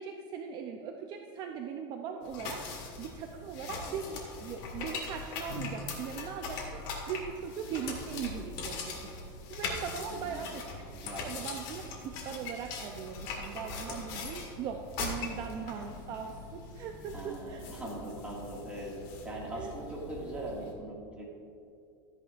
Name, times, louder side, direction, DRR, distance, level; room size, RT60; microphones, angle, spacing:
voice 1, 0.0-10.7 11.2-17.7 19.5-19.7, right 7 dB, 40° right, 4 dB, 0.5 m, -40 dB
sound 1, 2.2-20.7, left 4 dB, 45° left, 2.0 m, -41 dB
voice 2, 10.1-10.5 10.9-11.3 17.1-18.9 19.2-21.3, right 1 dB, 10° right, -4 dB, 2.0 m, -41 dB
13.5 x 9.9 x 2.5 m, 2.6 s
supercardioid pair, 155°, 12 cm